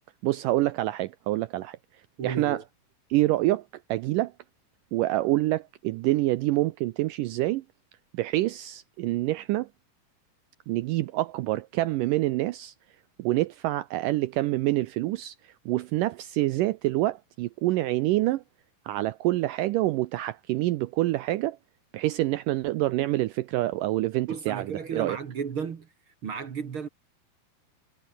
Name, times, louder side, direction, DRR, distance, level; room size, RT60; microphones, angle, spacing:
voice 1, 0.2-1.8 2.2-2.6 3.1-3.6 3.9-4.3 4.9-7.6 8.1-9.7 10.7-12.7 13.2-18.4 18.9-21.6 21.9-25.2, right 17 dB, 85° right, 1.9 m, -26 dB
voice 2, 2.2-2.6 24.3-25.9 26.2-26.9, right 6 dB, 45° right, 1.8 m, -33 dB
omnidirectional pair, 4.5 m